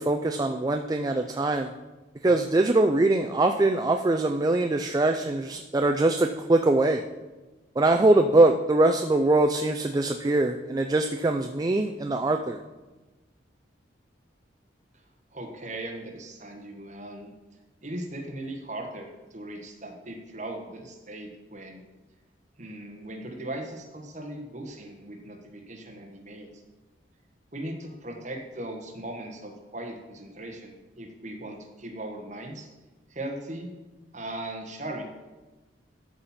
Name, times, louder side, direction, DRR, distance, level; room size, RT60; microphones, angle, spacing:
voice 1, 0.0-1.7 2.2-7.0 7.8-12.6, right 2 dB, 20° right, 5 dB, 0.3 m, -23 dB
voice 2, 15.3-17.3 17.8-21.8 22.6-26.6 27.5-32.7 33.1-33.7 34.1-35.0, right 1 dB, 40° right, 2 dB, 1.4 m, -38 dB
12.5 x 4.3 x 5.7 m, 1.2 s
head